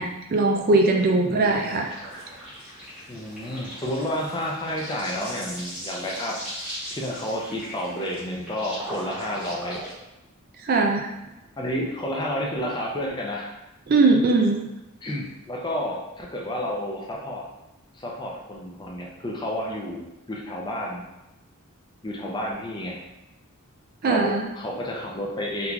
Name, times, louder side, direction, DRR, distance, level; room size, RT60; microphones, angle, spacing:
voice 1, 0.0-1.9 10.6-11.1 13.9-14.6 24.0-24.4, right 3 dB, 45° right, 2 dB, 0.4 m, -20 dB
voice 2, 1.2-1.7 3.1-6.4 6.9-9.8 11.6-13.6 15.0-17.5 17.9-21.0 22.0-23.0 24.1-25.7, left 1 dB, 20° left, -2 dB, 0.5 m, -30 dB
sound 1, 1.4-9.9, equal, 5° right, 1.1 m, -39 dB
3.8 x 2.9 x 2.3 m, 0.99 s
head